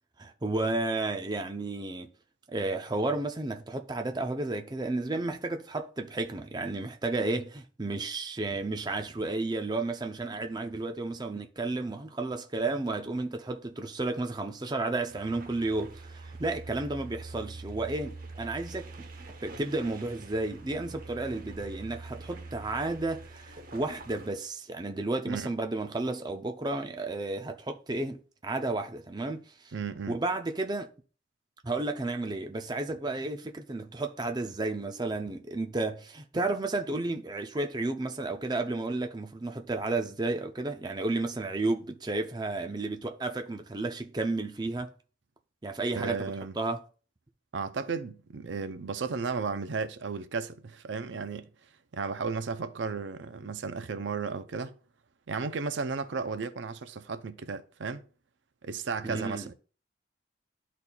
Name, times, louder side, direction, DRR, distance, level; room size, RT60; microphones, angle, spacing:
voice 1, 0.2-2.1 2.5-19.1 19.4-29.7 30.1-30.9 31.6-44.9 45.6-46.3 46.6-46.8 59.1-59.5, right 2 dB, 20° right, 0.5 m, -32 dB
sound 1, 15.1-24.3, right 3 dB, 50° right, 1.0 m, -45 dB
voice 2, 29.7-30.2 46.0-46.5 47.5-51.5 51.9-54.7 55.3-58.0 58.6-59.5, right 5 dB, 75° right, 0.5 m, -34 dB
12.5 x 4.2 x 2.3 m
head